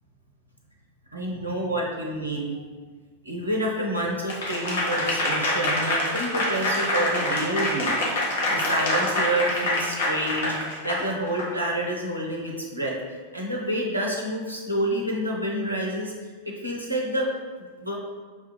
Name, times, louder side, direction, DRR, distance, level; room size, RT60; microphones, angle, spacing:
voice 1, 1.1-2.6 3.2-13.0 13.3-16.1 16.4-17.3 17.8-18.0, right 1 dB, 85° right, -1 dB, 0.5 m, -28 dB
Applause / Crowd, 4.3-11.5, left 1 dB, 60° left, 0.8 m, -26 dB
5.4 x 2.4 x 3.0 m, 1.5 s
figure-of-eight pair, 90°, 0 cm